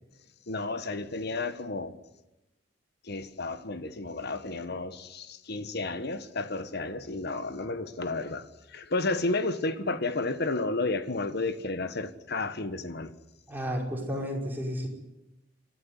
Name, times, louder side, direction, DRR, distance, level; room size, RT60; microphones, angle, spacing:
voice 1, 0.5-2.0 3.0-13.1, left 3 dB, 60° left, 1.5 m, -32 dB
voice 2, 13.5-14.9, equal, 10° right, 5.3 m, -32 dB
28.5 x 12.5 x 9.7 m
head